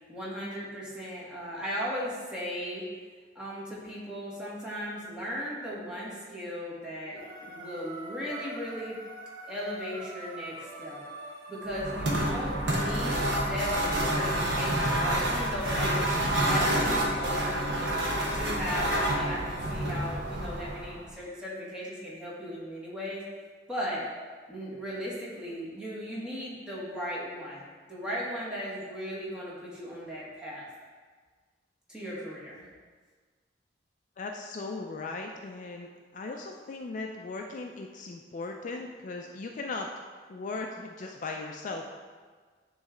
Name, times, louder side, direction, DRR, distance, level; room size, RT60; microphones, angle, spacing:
voice 1, 0.1-2.9 3.3-9.0 9.5-11.0 11.5-23.2 23.7-24.0 24.5-30.7 31.9-32.6, equal, 5° right, -7 dB, 1.5 m, -37 dB
sound 1, 7.2-13.2, right 2 dB, 55° right, 1.8 m, -44 dB
sound 2, 11.7-21.1, right 1 dB, 75° right, 1.1 m, -28 dB
voice 2, 34.2-39.9 40.3-41.9, left 3 dB, 45° left, 2 dB, 0.4 m, -38 dB
9.2 x 3.2 x 3.7 m, 1.5 s
head